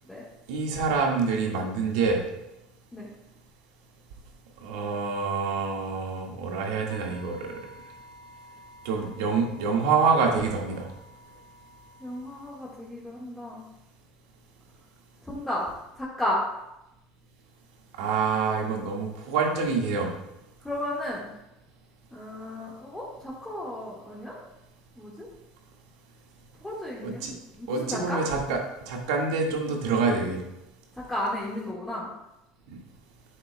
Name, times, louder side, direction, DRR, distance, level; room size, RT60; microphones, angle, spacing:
voice 1, 0.5-2.2 4.6-7.6 8.9-10.9 18.0-20.1 27.0-27.3 27.7-28.6 28.9-30.4, right 4 dB, 85° right, 0 dB, 1.8 m, -26 dB
sound 1, 6.9-12.5, equal, 45° left, 2.2 m, -51 dB
voice 2, 12.0-13.7 15.2-15.7 15.9-16.4 20.6-21.3 22.1-24.4 25.0-25.3 26.6-28.2 30.9-32.1, left 1 dB, 5° left, -6 dB, 1.7 m, -33 dB
10.5 x 7.7 x 2.3 m, 0.90 s
supercardioid pair, 125°, 2 cm